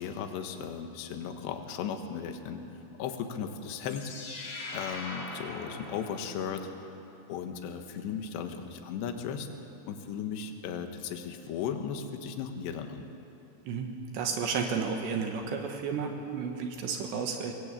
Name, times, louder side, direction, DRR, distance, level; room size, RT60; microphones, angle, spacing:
voice 1, 0.0-2.6 3.0-4.1 4.7-6.7 7.3-9.5 9.9-13.1, left 7 dB, 70° left, 5 dB, 3.4 m, -36 dB
sound 1, 3.6-6.7, left 2 dB, 85° left, 5.8 m, -41 dB
voice 2, 13.7-17.5, right 5 dB, 70° right, 3 dB, 3.3 m, -32 dB
23.5 x 19.0 x 8.5 m, 2.8 s
omnidirectional pair, 5.6 m